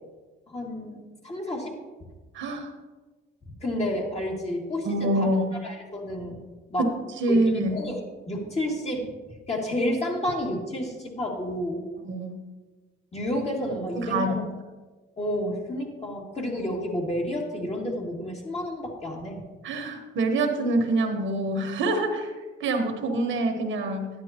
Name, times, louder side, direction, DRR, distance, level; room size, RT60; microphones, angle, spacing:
voice 1, 0.5-1.8 3.6-5.2 5.6-6.4 6.7-6.9 7.3-7.4 7.7-8.0 8.2-9.1 9.5-11.8 13.1-14.4 15.2-19.4, left 1 dB, 30° left, -1 dB, 2.3 m, -30 dB
voice 2, 2.3-2.7 4.8-5.6 6.8-6.9 7.2-7.8 12.0-12.3 14.0-14.4 19.6-22.3 22.6-24.1, right 2 dB, 75° right, 4 dB, 1.4 m, -25 dB
12.0 x 10.0 x 3.0 m, 1.3 s
cardioid pair, 90°, 20 cm